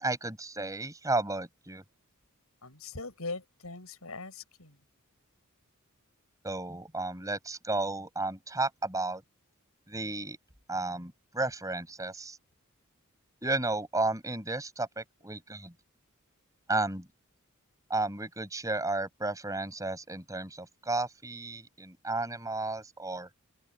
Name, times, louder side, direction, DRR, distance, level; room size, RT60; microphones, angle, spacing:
voice 1, 0.0-1.8 6.4-9.2 9.9-10.4 10.7-12.4 13.4-15.7 16.7-17.1 17.9-23.3, right 2 dB, 15° right, 7.1 m, -33 dB
voice 2, 2.6-4.8, left 3 dB, 85° left, 6.0 m, -41 dB
open air
head